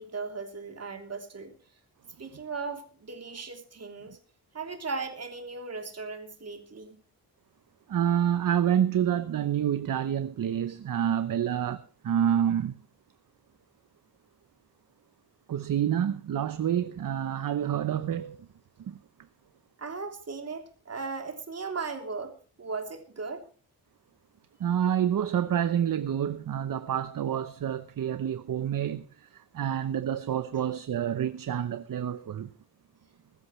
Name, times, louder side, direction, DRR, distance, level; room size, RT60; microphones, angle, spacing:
voice 1, 0.0-1.5 2.2-4.2 4.5-7.0 19.8-23.4, right 4 dB, 40° right, 3.2 m, -37 dB
voice 2, 7.9-12.7 15.5-18.5 18.9-19.0 24.6-32.5, right 9 dB, 60° right, 0.8 m, -28 dB
21.5 x 14.0 x 3.2 m
wide cardioid pair, 140°, 38 cm